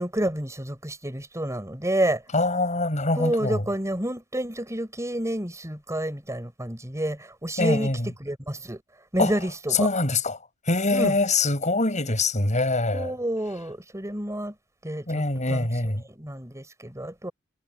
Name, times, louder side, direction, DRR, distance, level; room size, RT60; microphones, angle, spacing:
voice 1, 0.0-2.2 3.2-7.9 8.2-8.8 9.1-9.9 10.9-11.2 12.9-14.5 14.8-17.3, right 1 dB, 15° right, 5.4 m, -29 dB
voice 2, 2.3-3.6 7.6-8.1 9.2-9.3 9.7-10.4 10.7-13.1 15.1-16.0, left 2 dB, 35° left, 5.9 m, -24 dB
head